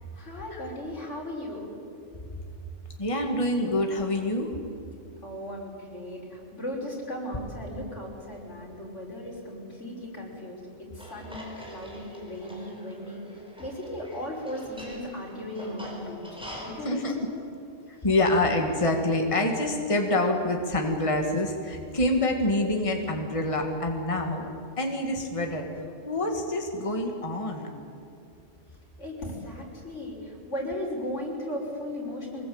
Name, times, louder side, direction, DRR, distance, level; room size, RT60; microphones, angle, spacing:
voice 1, 0.1-1.7 5.2-13.2 13.6-17.3 29.0-32.5, left 1 dB, 85° left, -2 dB, 6.1 m, -36 dB
voice 2, 3.0-4.5 16.8-17.2 17.9-24.5 24.8-25.6 26.1-27.7, left 1 dB, 25° left, 3 dB, 2.0 m, -26 dB
sound 1, 11.0-16.7, equal, 5° right, 5.1 m, -44 dB
24.5 x 21.0 x 8.8 m, 2.5 s
omnidirectional pair, 1.2 m